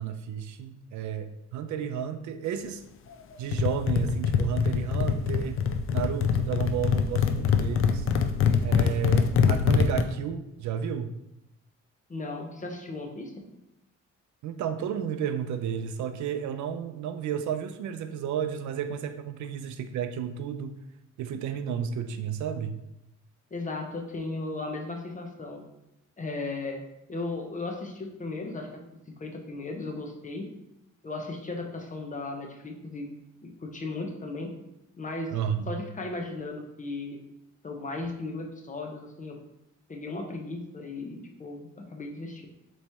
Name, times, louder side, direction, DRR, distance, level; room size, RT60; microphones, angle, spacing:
voice 1, 0.0-2.8 3.4-5.6 5.9-8.1 8.6-11.2 14.4-20.7 21.2-22.8 35.3-35.7, right 8 dB, 70° right, 9 dB, 0.5 m, -32 dB
sound 1, 3.5-10.0, left 6 dB, 45° left, 0.4 m, -24 dB
voice 2, 12.1-13.5 23.5-25.6 26.2-26.8 27.1-28.7 29.2-30.5 31.0-33.1 33.4-34.5 35.0-35.3 35.7-37.2 37.6-39.4 39.9-42.5, left 3 dB, 25° left, 2 dB, 0.8 m, -36 dB
4.1 x 3.1 x 3.4 m, 0.87 s
cardioid pair, 90°, 30 cm